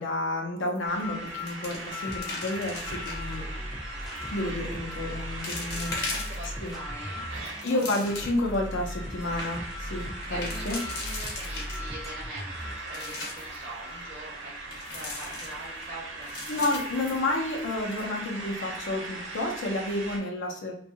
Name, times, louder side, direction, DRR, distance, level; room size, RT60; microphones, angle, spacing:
voice 1, 0.0-3.4 4.3-6.1 6.6-6.7 7.6-10.8 16.5-20.7, left 2 dB, 75° left, 0 dB, 0.5 m, -30 dB
sound 1, 0.7-1.0 1.3-3.3 4.0-4.4 4.9-5.0 5.4-6.7 7.2-8.5 8.9-9.0 9.2-9.5 10.2-12.1 12.6-13.6 14.7-15.8 16.2-17.7 18.0-18.1 18.6-18.8, left 2 dB, 50° left, 0.9 m, -38 dB
sound 2, 0.9-20.2, right 1 dB, 90° right, 0.8 m, -39 dB
sound 3, 2.1-12.9, equal, ahead, 0.3 m, -39 dB
voice 2, 3.5-3.8 6.1-7.8 10.3-16.4, right 1 dB, 45° right, -4 dB, 0.6 m, -43 dB
2.6 x 2.3 x 2.6 m, 0.69 s
head